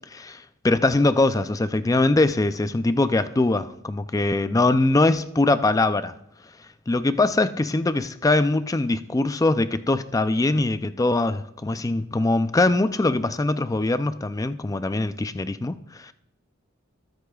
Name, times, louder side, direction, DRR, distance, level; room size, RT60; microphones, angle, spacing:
voice 1, 0.1-6.1 6.9-16.1, left 2 dB, 15° left, 0.4 m, -22 dB
22.0 x 8.0 x 2.4 m
head